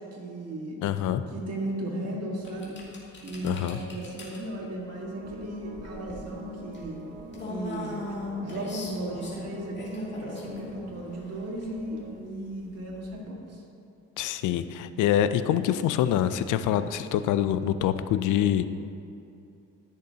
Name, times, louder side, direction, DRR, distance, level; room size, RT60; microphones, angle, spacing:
voice 1, 0.0-0.8 1.3-2.8 3.2-7.0 7.5-13.6, right 1 dB, 55° right, -2 dB, 1.9 m, -36 dB
voice 2, 0.8-1.2 3.4-3.8 14.2-18.6, left 10 dB, 85° left, 12 dB, 0.5 m, -25 dB
sound 1, 2.4-13.2, left 2 dB, 35° left, 2.2 m, -41 dB
sound 2, 4.9-12.3, right 3 dB, 80° right, 1.6 m, -44 dB
14.0 x 6.5 x 2.8 m, 2.7 s
cardioid pair, 90°, 30 cm